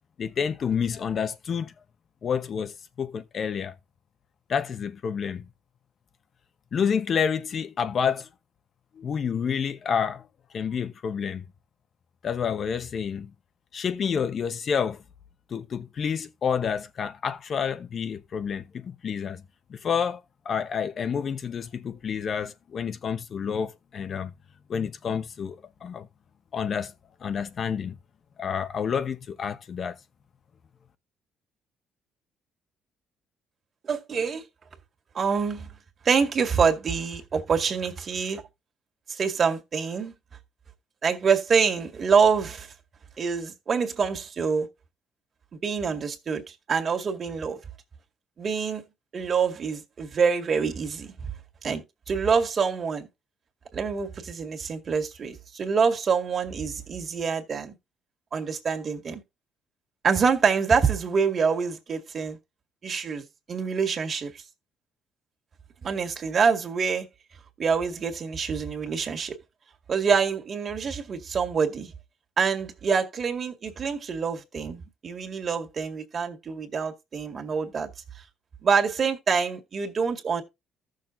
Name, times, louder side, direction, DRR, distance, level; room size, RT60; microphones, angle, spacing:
voice 1, 0.2-1.7 2.2-3.7 4.5-5.5 6.7-8.3 8.9-10.2 10.5-11.4 12.2-13.3 13.7-15.0 15.5-19.4 19.7-24.3 24.7-25.6 25.8-26.1 26.5-26.9 27.2-27.9 28.4-30.0, left 7 dB, 50° left, 1.0 m, -29 dB
voice 2, 33.8-34.4 35.1-35.7 36.0-38.4 39.1-40.1 41.0-42.7 43.2-44.7 45.6-47.6 48.4-48.8 49.1-51.1 51.6-53.1 53.7-57.7 58.3-59.2 60.0-62.4 62.8-64.3 65.8-67.1 67.6-69.3 69.9-71.9 72.4-77.9 78.6-80.4, right 5 dB, 45° right, 2.0 m, -26 dB
14.5 x 6.6 x 2.7 m
cardioid pair, 95°, 0 cm